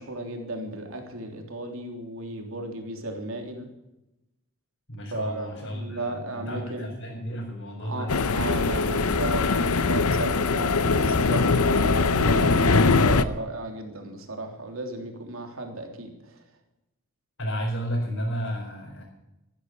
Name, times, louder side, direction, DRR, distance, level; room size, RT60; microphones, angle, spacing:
voice 1, 0.0-3.7 5.1-6.9 7.8-16.4, right 2 dB, 65° right, 3 dB, 3.3 m, -35 dB
voice 2, 4.9-8.1 17.4-19.0, equal, 60° left, -5 dB, 4.8 m, -32 dB
sound 1, 8.1-13.2, left 4 dB, 85° left, 0.8 m, -22 dB
14.0 x 13.5 x 6.6 m, 0.93 s
head